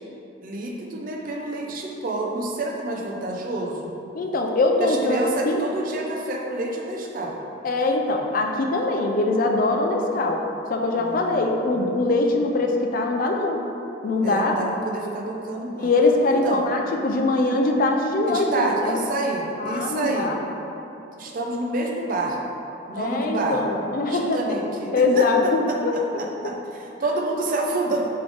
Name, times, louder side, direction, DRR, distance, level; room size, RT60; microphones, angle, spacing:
voice 1, 0.4-3.9 4.8-7.4 10.9-11.4 14.2-15.9 16.3-16.7 18.3-20.3 21.2-22.4 22.9-23.6 24.1-25.3 25.9-28.1, right 2 dB, 45° right, 0 dB, 0.4 m, -28 dB
voice 2, 4.1-5.6 7.6-10.4 10.7-13.6 14.0-14.6 15.8-19.0 19.6-20.4 23.0-24.6 24.9-26.0, left 2 dB, 45° left, 2 dB, 0.3 m, -22 dB
3.4 x 3.3 x 3.8 m, 2.9 s
head